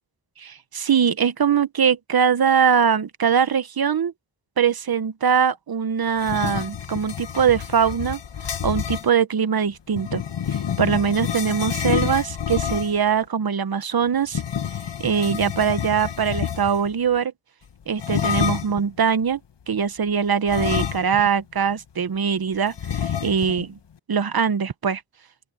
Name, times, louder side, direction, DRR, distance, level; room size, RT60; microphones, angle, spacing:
voice 1, 0.4-4.1 4.6-8.2 8.6-10.2 10.5-14.4 15.0-17.3 17.9-19.4 19.7-23.8 24.1-25.0, right 7 dB, 55° right, 1.2 m, -22 dB
sound 1, 6.2-9.1 9.9-13.1 14.3-16.9 18.0-18.8 20.5-21.4 21.7-21.8 22.8-23.6, left 8 dB, 65° left, 1.7 m, -28 dB
open air
wide cardioid pair, 80°, 45 cm